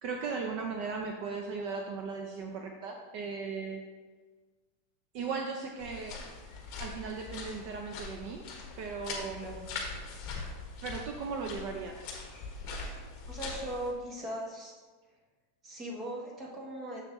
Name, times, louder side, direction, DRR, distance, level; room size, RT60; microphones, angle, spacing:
voice 1, 0.0-3.8 5.1-6.2 6.8-8.5 8.8-9.4 10.8-12.1, right 5 dB, 40° right, 3 dB, 0.5 m, -37 dB
sound 1, 5.8-13.9, left 4 dB, 35° left, 1.3 m, -42 dB
voice 2, 9.2-9.6 13.3-14.7 15.6-17.0, right 1 dB, 15° right, -2 dB, 1.1 m, -39 dB
7.0 x 6.9 x 3.0 m, 1.4 s
supercardioid pair, 170°, 0 cm